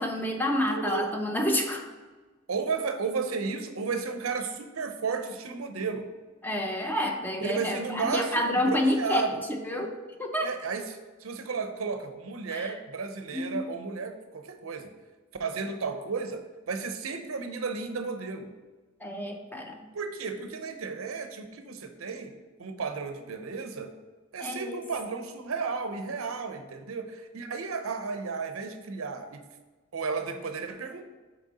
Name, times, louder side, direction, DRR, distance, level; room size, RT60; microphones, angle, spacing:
voice 1, 0.0-1.9 6.4-9.2 9.6-10.5 12.5-12.7 13.3-13.6 19.0-19.8 24.4-24.8, left 1 dB, 10° left, 3 dB, 0.6 m, -29 dB
voice 2, 0.7-1.1 2.5-6.1 7.4-9.3 10.4-14.9 15.4-16.4 16.7-18.5 19.9-22.3 22.6-23.9 24.3-29.4 29.9-31.0, right 4 dB, 85° right, 7 dB, 0.7 m, -33 dB
6.4 x 4.3 x 4.0 m, 1.3 s
head